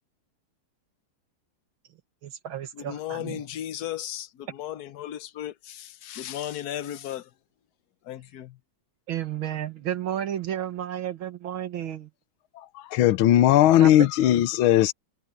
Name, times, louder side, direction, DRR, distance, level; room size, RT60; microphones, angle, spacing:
voice 1, 2.2-3.4 9.1-12.1 13.8-14.1, right 10 dB, 75° right, 2.1 m, -32 dB
voice 2, 2.8-7.3 8.0-8.6, left 11 dB, 60° left, 1.1 m, -35 dB
voice 3, 12.5-14.9, left 12 dB, 80° left, 1.6 m, -19 dB
omnidirectional pair, 2.3 m